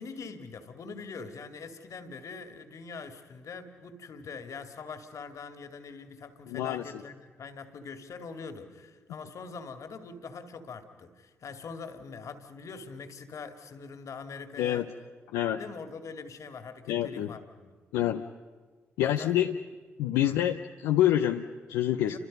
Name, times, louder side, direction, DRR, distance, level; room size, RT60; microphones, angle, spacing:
voice 1, 0.0-14.9 15.6-17.8 19.0-19.5 20.2-20.4 22.1-22.2, left 5 dB, 60° left, 8 dB, 2.3 m, -43 dB
voice 2, 6.5-6.8 14.6-14.8 15.3-15.6 16.9-17.3 17.9-18.2 19.0-19.5 20.0-22.2, left 12 dB, 85° left, 4 dB, 0.7 m, -27 dB
29.0 x 27.0 x 5.4 m, 1.4 s
hypercardioid pair, 45°, 6 cm